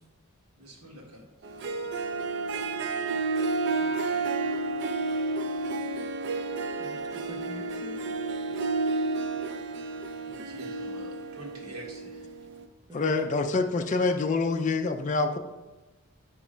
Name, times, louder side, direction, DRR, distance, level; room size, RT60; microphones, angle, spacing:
voice 1, 0.6-1.7 8.5-8.6 10.2-12.4, right 1 dB, 80° right, -2 dB, 1.5 m, -47 dB
Harp, 1.4-12.6, right 3 dB, 55° right, 0.4 m, -31 dB
voice 2, 3.8-4.2 6.8-8.1 12.9-13.1 13.6-13.7, right 2 dB, 15° right, 1 dB, 0.7 m, -46 dB
voice 3, 12.9-15.4, left 3 dB, 35° left, 5 dB, 0.4 m, -26 dB
6.4 x 3.1 x 4.9 m, 1.1 s
head